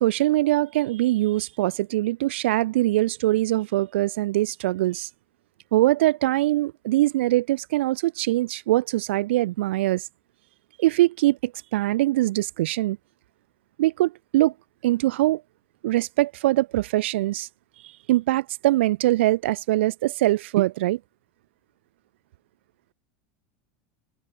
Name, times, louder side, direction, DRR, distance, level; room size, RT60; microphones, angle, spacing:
voice 1, 0.0-5.1 5.7-10.0 10.8-13.0 13.8-14.5 14.8-15.4 15.8-17.5 18.1-21.0, right 16 dB, 85° right, 0.8 m, -22 dB
supercardioid pair, 125°, 6 cm